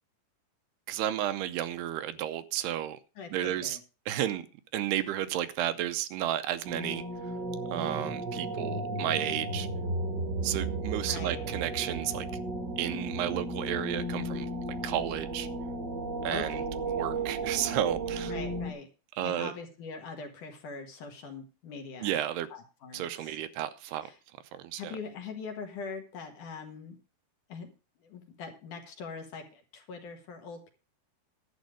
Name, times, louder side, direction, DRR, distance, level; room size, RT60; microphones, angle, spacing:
voice 1, 0.9-3.0 3.3-3.8 4.1-4.5 4.7-7.0 7.7-9.7 10.4-12.3 12.8-14.5 14.8-15.5 16.2-18.3 19.2-19.5 22.0-22.5 22.9-24.1 24.5-25.0, right 12 dB, 80° right, 2.7 m, -32 dB
voice 2, 3.2-3.8 11.0-11.5 16.3-16.6 18.3-18.9 19.2-22.2 22.5-23.4 24.0-24.2 24.7-27.0 27.5-27.7 28.0-30.7, left 5 dB, 55° left, 2.9 m, -42 dB
sound 1, 6.6-18.7, right 2 dB, 45° right, 1.4 m, -34 dB
11.5 x 9.0 x 5.0 m
omnidirectional pair, 4.8 m